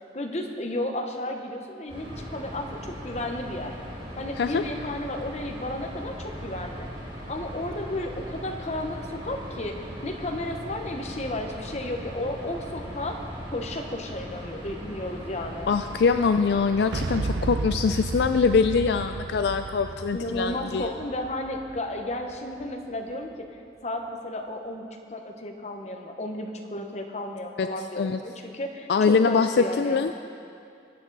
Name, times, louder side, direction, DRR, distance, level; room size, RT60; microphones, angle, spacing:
voice 1, 0.1-3.7 4.2-6.9 7.3-13.2 13.5-15.7 20.1-30.0, left 1 dB, 35° left, 3 dB, 0.9 m, -33 dB
sound 1, 1.9-17.2, equal, 25° right, 2.6 m, -39 dB
voice 2, 15.7-20.9 27.6-27.7 28.0-28.2 28.9-30.1, left 5 dB, 60° left, 8 dB, 0.3 m, -23 dB
Boom, 16.9-22.8, right 3 dB, 75° right, 0.6 m, -33 dB
21.0 x 8.7 x 4.0 m, 2.5 s
head